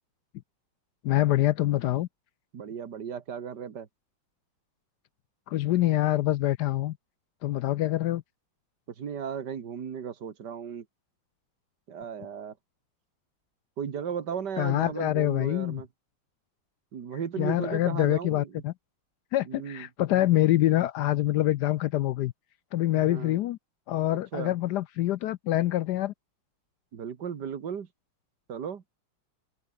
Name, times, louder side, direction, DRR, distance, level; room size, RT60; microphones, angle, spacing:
voice 1, 1.0-2.1 5.5-7.0 7.4-8.2 14.6-15.8 17.4-18.7 19.3-22.3 22.7-23.6 23.9-26.1, left 14 dB, 70° left, 1.0 m, -25 dB
voice 2, 2.5-3.9 9.0-10.9 11.9-12.6 13.8-15.9 16.9-18.6 19.4-19.9 22.9-23.4 24.3-24.5 26.9-27.9 28.5-28.8, right 7 dB, 60° right, 2.3 m, -35 dB
open air
omnidirectional pair, 2.1 m